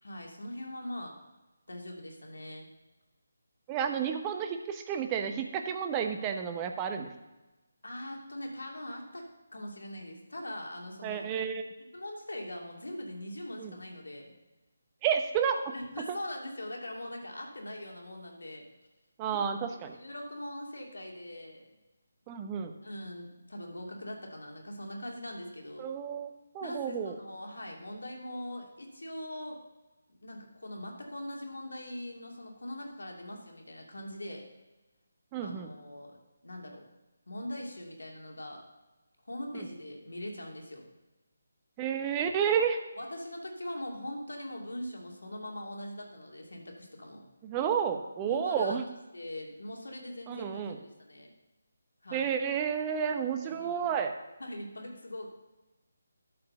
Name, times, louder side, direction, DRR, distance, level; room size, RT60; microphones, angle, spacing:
voice 1, 0.0-1.2 1.7-2.7 7.8-11.3 11.9-14.3 15.7-18.6 19.3-19.4 19.7-21.7 22.8-25.9 26.6-29.6 30.1-34.5 35.4-36.2 36.4-36.8 37.3-38.6 39.2-40.8 42.4-42.6 43.0-47.2 48.3-48.8 49.1-51.3 52.0-52.3 53.4-53.9 54.4-55.3, left 1 dB, 75° left, 0 dB, 2.6 m, -41 dB
voice 2, 3.7-7.1 11.0-11.6 13.6-13.7 15.0-15.7 16.1-16.2 19.2-20.0 22.3-22.7 25.8-27.2 35.3-35.7 39.5-39.7 41.8-42.8 47.4-48.8 50.3-50.8 52.1-54.1, right 7 dB, 20° right, 6 dB, 0.9 m, -31 dB
12.0 x 4.9 x 6.7 m, 1.1 s
figure-of-eight pair, 150°, 0 cm